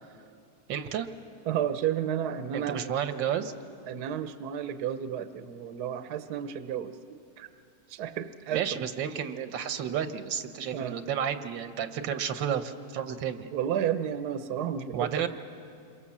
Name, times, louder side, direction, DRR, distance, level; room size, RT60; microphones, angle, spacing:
voice 1, 0.7-1.1 2.5-3.5 8.5-13.5 14.9-15.3, right 8 dB, 85° right, 10 dB, 1.7 m, -31 dB
voice 2, 1.5-2.9 3.9-7.5 7.9-8.8 10.7-11.0 13.5-15.3, right 9 dB, 65° right, 11 dB, 1.3 m, -32 dB
27.5 x 23.5 x 7.3 m, 2.5 s
omnidirectional pair, 2.0 m